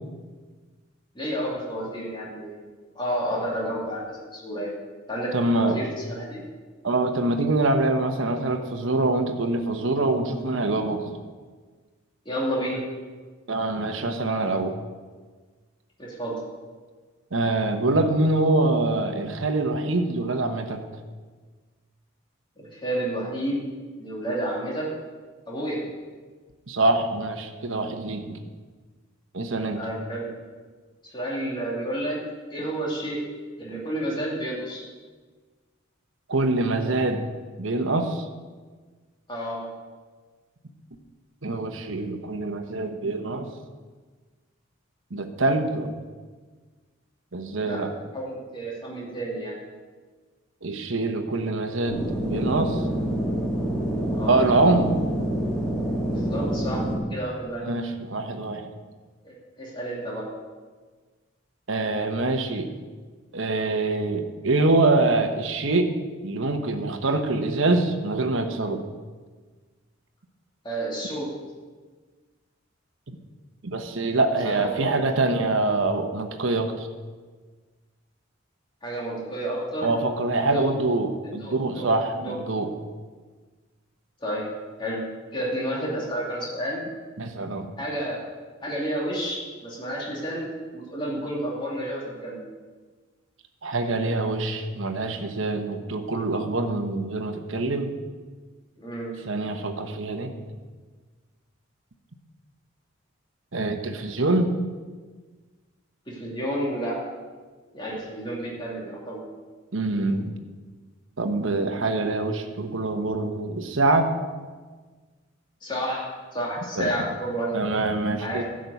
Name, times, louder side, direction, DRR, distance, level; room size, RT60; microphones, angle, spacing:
voice 1, 1.1-2.6 2.9-4.8 5.1-6.4 12.2-12.8 16.0-16.4 22.6-23.6 24.0-24.9 25.5-25.8 29.7-30.3 31.0-32.2 32.5-33.2 33.6-34.8 39.3-39.6 47.6-47.9 48.1-49.6 54.1-54.4 56.1-56.8 57.1-57.6 59.2-60.3 70.6-71.3 74.4-74.9 78.8-79.9 80.4-80.7 81.2-81.9 82.1-82.4 84.2-84.5 84.8-85.0 85.3-86.8 87.8-88.2 88.6-92.4 98.8-99.1 106.1-107.0 107.7-109.2 115.6-117.6 118.2-118.4, right 1 dB, 20° left, -4 dB, 2.6 m, -30 dB
voice 2, 5.3-5.8 6.8-11.2 13.5-14.8 17.3-20.8 26.7-28.5 29.3-29.8 36.3-37.2 37.6-38.3 41.4-43.5 45.1-46.0 47.3-47.9 50.6-52.8 54.2-54.9 57.6-58.7 61.7-62.7 63.3-65.9 66.2-68.8 73.6-76.9 79.8-82.7 87.2-87.7 93.6-97.9 99.3-100.3 103.5-104.5 109.7-110.3 111.2-114.1 116.8-116.9 117.5-118.4, right 2 dB, 70° right, 6 dB, 1.0 m, -25 dB
sound 1, 51.9-56.9, right 1 dB, 5° left, 1.9 m, -27 dB
11.5 x 6.3 x 8.2 m, 1.4 s
head